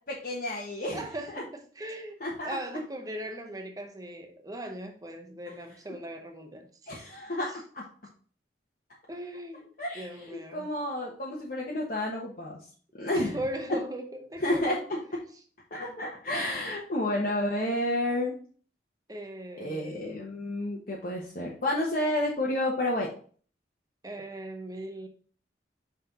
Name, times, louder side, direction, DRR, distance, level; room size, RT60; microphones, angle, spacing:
voice 1, 0.1-1.0 2.2-2.5 6.9-7.5 7.7-7.8 9.8-12.6 13.0-13.4 14.4-14.8 15.7-18.3 19.6-23.1, left 1 dB, 50° left, 1.2 m, -30 dB
voice 2, 0.9-6.7 7.5-7.6 9.1-10.7 13.1-14.9 15.1-15.3 15.8-16.0 19.1-20.1 24.0-25.1, right 1 dB, 20° right, 0.8 m, -39 dB
5.8 x 4.4 x 4.0 m
head